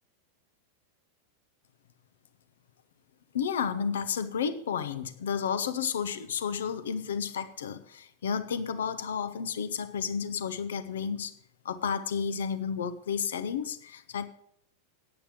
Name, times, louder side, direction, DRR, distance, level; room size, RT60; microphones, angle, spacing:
voice 1, 3.3-11.3 11.6-14.3, left 7 dB, 60° left, 12 dB, 1.0 m, -32 dB
9.8 x 8.5 x 7.3 m, 0.70 s
figure-of-eight pair, 90°, 0 cm